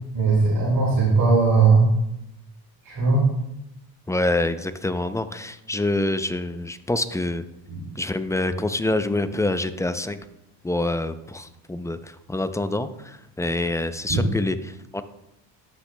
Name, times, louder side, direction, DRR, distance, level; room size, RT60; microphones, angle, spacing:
voice 1, 0.1-1.8 2.9-3.2 14.1-14.2, right 4 dB, 40° right, -6 dB, 2.8 m, -18 dB
voice 2, 4.1-7.4 8.0-10.2 10.6-15.0, left 2 dB, 5° left, 11 dB, 0.4 m, -26 dB
13.0 x 6.0 x 2.2 m, 0.84 s
supercardioid pair, 70°, 50 cm